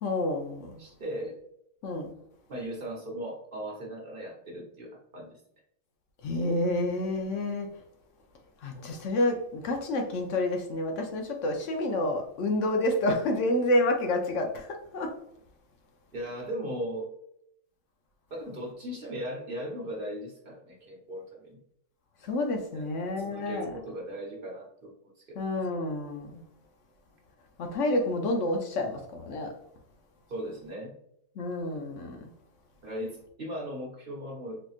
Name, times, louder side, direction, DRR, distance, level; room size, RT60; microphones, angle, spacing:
voice 1, 0.0-0.8 1.8-2.1 6.2-7.7 8.6-15.1 22.2-23.7 25.4-26.4 27.6-29.5 31.4-32.3, left 1 dB, 70° left, 3 dB, 0.9 m, -29 dB
voice 2, 0.8-1.4 2.5-5.4 16.1-17.1 18.3-21.6 22.7-22.9 23.2-25.4 30.3-30.9 32.8-34.6, equal, 50° right, -1 dB, 0.9 m, -38 dB
4.2 x 2.8 x 2.4 m, 0.73 s
omnidirectional pair, 1.4 m